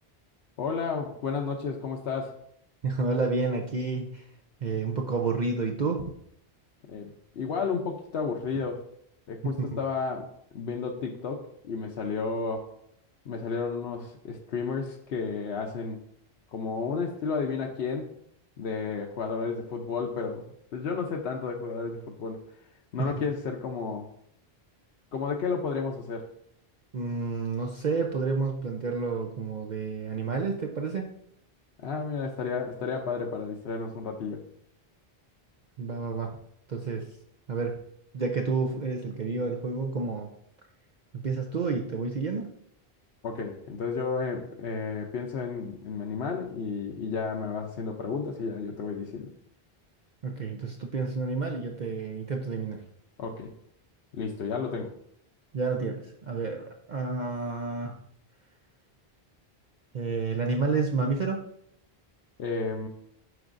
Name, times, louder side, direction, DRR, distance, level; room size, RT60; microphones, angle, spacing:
voice 1, 0.6-2.4 6.9-8.8 9.3-12.7 13.2-16.0 16.5-18.1 18.6-22.6 22.9-24.1 25.1-26.3 31.8-34.4 43.2-49.3 53.2-53.5 54.1-55.0 62.4-62.9, left 5 dB, 80° left, 1 dB, 1.0 m, -32 dB
voice 2, 2.8-4.3 4.6-6.1 9.4-9.8 23.0-23.1 26.9-31.1 35.8-36.4 36.7-37.1 37.5-37.8 38.1-40.3 41.1-42.5 50.2-52.8 55.5-58.0 59.9-61.4, right 4 dB, 50° right, 2 dB, 0.7 m, -30 dB
9.4 x 6.0 x 2.6 m, 0.70 s
omnidirectional pair, 1.1 m